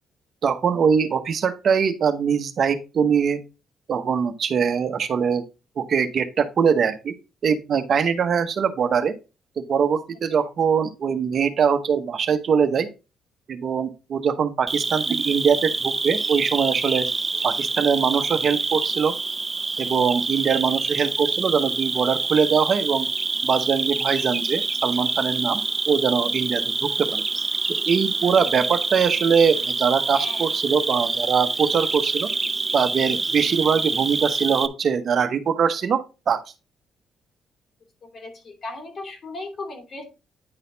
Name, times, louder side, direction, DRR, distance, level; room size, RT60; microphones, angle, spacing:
voice 1, 0.4-3.4 3.9-5.4 5.8-7.1 7.4-9.2 9.6-12.9 13.5-17.1 17.4-19.2 19.8-23.1 23.4-25.6 25.9-27.2 27.9-32.3 32.7-36.4, right 6 dB, 55° right, 8 dB, 1.0 m, -22 dB
Cricket, 14.7-34.7, right 3 dB, 25° right, 0.6 m, -26 dB
voice 2, 38.1-40.0, left 2 dB, 50° left, 3 dB, 2.8 m, -36 dB
9.7 x 4.1 x 3.9 m, 0.29 s
cardioid pair, 90°, 0 cm